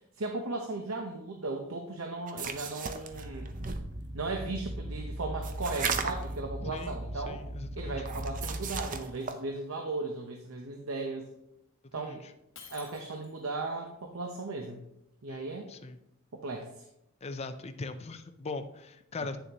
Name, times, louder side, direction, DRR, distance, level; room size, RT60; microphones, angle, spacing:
voice 1, 0.2-3.5 4.1-7.4 7.8-11.3 11.9-12.2 12.7-14.8 15.2-15.7 16.3-16.9 19.2-19.3, right 3 dB, 80° right, 3 dB, 0.8 m, -36 dB
sound 1, 2.3-3.9 5.4-6.3 8.0-9.4, right 6 dB, 40° right, 0.6 m, -36 dB
sound 2, 3.1-8.9, right 1 dB, 65° right, 1.5 m, -39 dB
voice 2, 6.6-7.0 7.3-8.0 12.0-12.2 15.3-16.0 17.2-19.4, left 3 dB, 30° left, 9 dB, 0.5 m, -40 dB
Shatter, 12.6-13.6, left 7 dB, 70° left, 1.3 m, -51 dB
9.0 x 6.9 x 2.9 m, 0.83 s
head